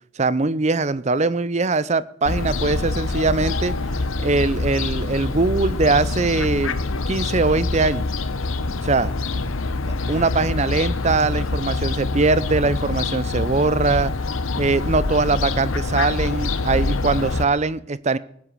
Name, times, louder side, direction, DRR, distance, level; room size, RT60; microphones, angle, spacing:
voice 1, 0.2-3.7 4.2-6.8 7.1-8.1 8.8-9.1 10.1-14.1 14.6-18.2, right 3 dB, 35° right, 18 dB, 0.5 m, -21 dB
Fowl, 2.3-17.4, left 3 dB, 75° left, 0.9 m, -25 dB
18.5 x 8.1 x 7.4 m, 0.68 s
head